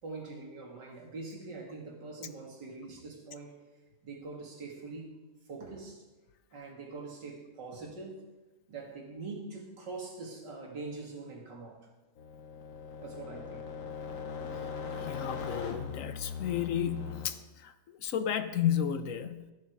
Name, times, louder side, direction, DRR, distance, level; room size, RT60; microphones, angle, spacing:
voice 1, 0.0-3.6 4.0-5.1 5.5-6.0 6.5-8.2 8.7-11.8 13.0-13.7, right 3 dB, 60° right, 0 dB, 3.0 m, -43 dB
sound 1, 12.2-17.3, left 5 dB, 75° left, 2.1 m, -40 dB
voice 2, 15.0-19.5, left 9 dB, 55° left, 10 dB, 1.0 m, -33 dB
15.0 x 11.5 x 4.8 m, 1.1 s
omnidirectional pair, 2.1 m